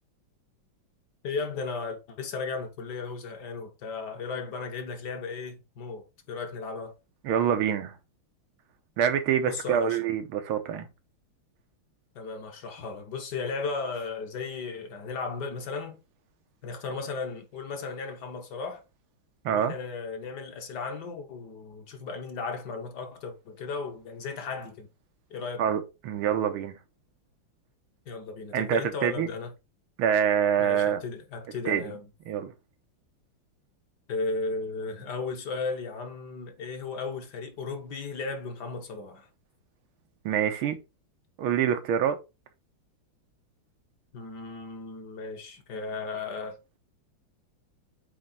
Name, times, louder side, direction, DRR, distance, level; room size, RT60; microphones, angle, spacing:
voice 1, 1.2-6.9 9.4-10.0 12.1-16.0 16.6-18.8 19.5-24.9 25.3-25.6 28.1-29.5 30.6-32.0 34.1-39.3 44.1-46.6, left 4 dB, 60° left, 1.6 m, -35 dB
voice 2, 7.2-8.0 9.0-10.9 19.5-19.7 25.6-26.8 28.5-29.3 30.0-31.0 31.7-31.8 32.3-32.5 40.3-40.8 41.4-42.2, right 9 dB, 90° right, 1.8 m, -26 dB
7.8 x 3.2 x 4.2 m
omnidirectional pair, 2.3 m